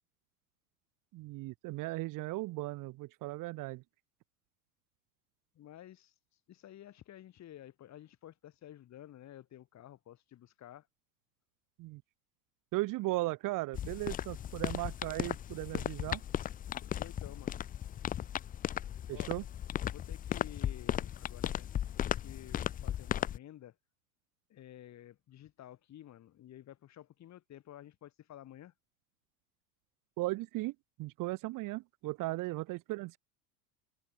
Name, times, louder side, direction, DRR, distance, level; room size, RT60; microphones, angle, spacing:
voice 1, 1.1-3.8 11.8-12.0 12.7-16.2 19.1-19.4 30.2-30.7 31.0-33.2, right 20 dB, 45° right, 1.1 m, -37 dB
voice 2, 5.5-6.1 6.5-10.9 16.8-17.6 19.1-19.3 19.8-23.8 24.5-28.7 32.2-32.4, left 12 dB, 35° left, 2.7 m, -52 dB
sound 1, 13.7-23.4, left 10 dB, 20° left, 0.5 m, -36 dB
hypercardioid pair, 90°, 45 cm